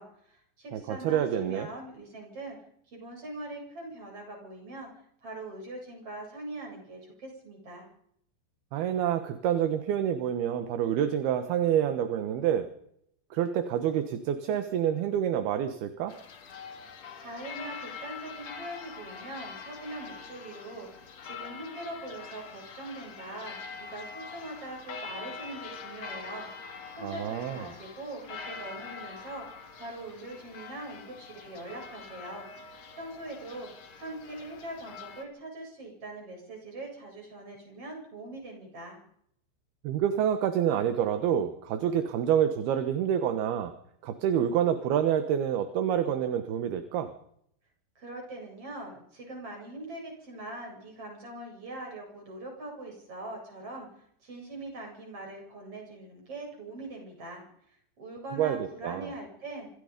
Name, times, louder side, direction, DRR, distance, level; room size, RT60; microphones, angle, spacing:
voice 1, 0.0-2.6 2.9-4.9 5.2-7.9 17.2-29.5 29.8-32.5 33.0-33.7 34.0-39.0 47.9-53.9 54.2-59.7, right 2 dB, 30° right, 1 dB, 8.6 m, -42 dB
voice 2, 0.7-1.7 8.7-12.7 13.3-16.1 27.0-27.7 39.8-43.7 44.0-47.1 58.4-59.1, right 9 dB, 65° right, 9 dB, 3.1 m, -27 dB
sound 1, 16.1-35.2, left 5 dB, 45° left, 2.6 m, -44 dB
26.0 x 24.0 x 5.3 m, 0.71 s
omnidirectional pair, 5.2 m